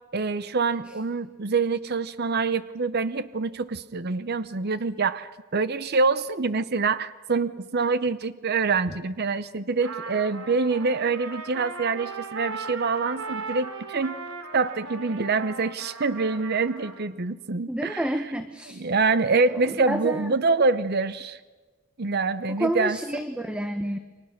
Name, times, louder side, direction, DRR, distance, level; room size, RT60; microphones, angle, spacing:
voice 1, 0.1-14.2 14.5-18.0 18.8-21.4 22.0-23.2, right 4 dB, 50° right, 14 dB, 0.7 m, -25 dB
Trumpet, 9.8-17.0, right 4 dB, 80° right, 2.7 m, -38 dB
voice 2, 17.7-18.8 19.6-20.3 22.6-24.0, right 1 dB, 5° right, 7 dB, 1.0 m, -29 dB
29.5 x 24.0 x 6.6 m, 1.3 s
head